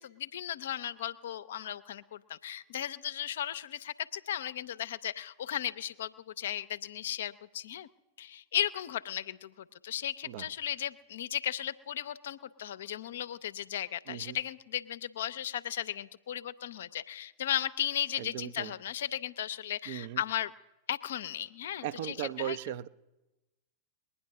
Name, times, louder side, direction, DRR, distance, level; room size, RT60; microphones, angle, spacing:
voice 1, 0.0-7.9 8.2-20.5 20.9-22.6, left 10 dB, 60° left, 14 dB, 0.5 m, -36 dB
voice 2, 14.1-14.4 18.2-18.7 19.9-20.2 21.8-22.9, right 11 dB, 50° right, 14 dB, 0.5 m, -37 dB
20.5 x 9.9 x 6.6 m, 1.1 s
figure-of-eight pair, 90°, 0 cm